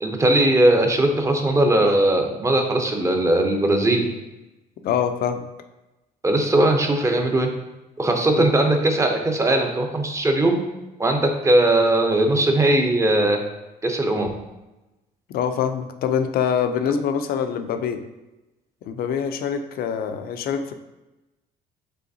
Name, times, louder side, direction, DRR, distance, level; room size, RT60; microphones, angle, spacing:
voice 1, 0.0-4.1 6.2-7.5 8.0-10.6 11.0-13.4 13.8-14.3, right 1 dB, 15° right, 4 dB, 0.6 m, -19 dB
voice 2, 4.8-5.4 8.4-8.5 15.3-18.0 18.9-20.7, left 7 dB, 65° left, 8 dB, 0.5 m, -24 dB
5.6 x 3.3 x 2.7 m, 1.0 s
cardioid pair, 110°, 17 cm